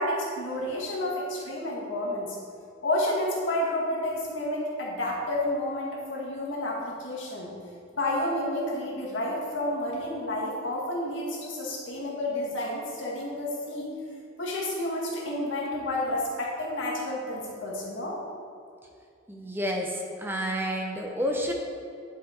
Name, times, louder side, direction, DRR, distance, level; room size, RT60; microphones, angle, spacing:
voice 1, 0.0-2.4 2.8-7.5 7.9-13.9 14.4-18.2, left 1 dB, 70° left, -3 dB, 1.7 m, -30 dB
voice 2, 19.3-21.5, equal, 10° right, 1 dB, 0.6 m, -30 dB
10.5 x 4.5 x 4.3 m, 2.4 s
head